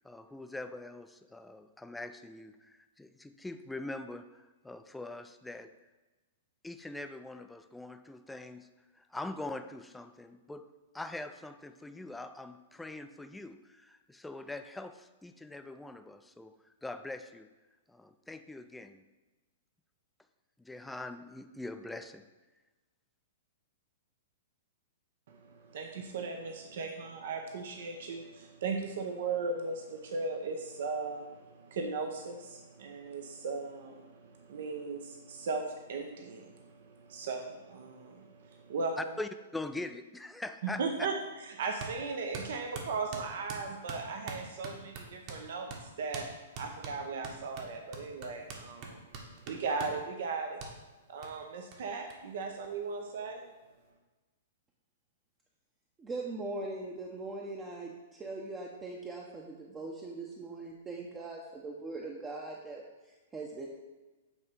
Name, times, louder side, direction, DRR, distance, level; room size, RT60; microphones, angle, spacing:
voice 1, 0.0-5.7 6.6-8.7 8.9-10.7 10.9-17.5 17.9-19.0 20.6-22.3 39.0-40.8, left 2 dB, 5° left, 9 dB, 0.4 m, -43 dB
voice 2, 25.3-39.1 40.8-45.7 46.0-46.3 46.6-50.6 51.1-53.4, right 4 dB, 65° right, 4 dB, 0.8 m, -37 dB
sound 1, 41.8-42.0 42.3-45.4 45.7-45.8 46.1-46.3 46.5-50.0 50.6-50.7 51.2-51.3 51.7-51.8 52.1-52.2 52.4-53.2, right 4 dB, 45° right, 1.3 m, -43 dB
voice 3, 56.0-63.7, right 3 dB, 15° right, -1 dB, 0.7 m, -41 dB
8.2 x 3.2 x 5.3 m, 1.2 s
hypercardioid pair, 135°, 0 cm